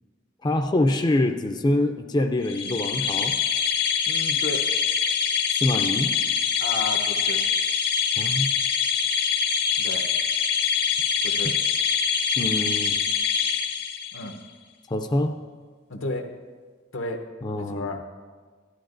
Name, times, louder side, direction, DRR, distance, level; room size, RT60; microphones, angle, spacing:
voice 1, 0.4-3.3 5.5-6.1 8.2-8.5 11.4-11.5 12.4-13.0 14.9-15.3 17.4-17.9, left 1 dB, 20° left, 5 dB, 0.4 m, -25 dB
sound 1, 2.5-14.3, left 6 dB, 55° left, 0.7 m, -24 dB
voice 2, 4.1-4.7 6.6-7.4 9.8-10.1 11.2-11.6 14.1-14.4 15.9-16.3 16.9-17.2 17.5-18.0, left 2 dB, 85° left, 4 dB, 0.9 m, -32 dB
13.0 x 11.5 x 2.6 m, 1.5 s
head